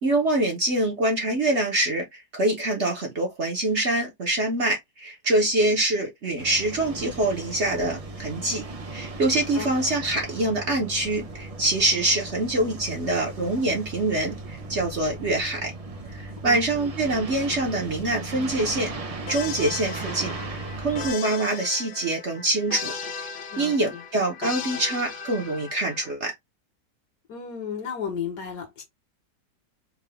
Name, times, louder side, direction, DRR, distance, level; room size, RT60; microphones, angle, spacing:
voice 1, 0.0-8.6 8.9-15.7 16.1-18.9 19.3-22.9 23.2-23.3 23.6-26.3, right 2 dB, 45° right, 1.0 m, -25 dB
sound 1, 6.4-21.1, right 2 dB, 65° right, 0.3 m, -37 dB
voice 2, 16.5-16.9 23.5-24.0 27.3-28.8, left 7 dB, 70° left, 1.8 m, -34 dB
sound 2, 19.3-26.1, left 5 dB, 85° left, 1.6 m, -37 dB
4.8 x 2.4 x 3.4 m
omnidirectional pair, 1.9 m